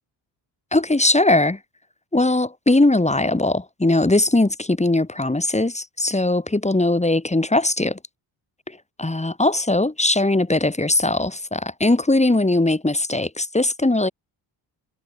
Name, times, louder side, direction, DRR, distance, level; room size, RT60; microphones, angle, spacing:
voice 1, 0.7-1.6 2.1-8.0 9.0-14.1, left 2 dB, 15° left, 5.8 m, -20 dB
cardioid pair, 75°, 48 cm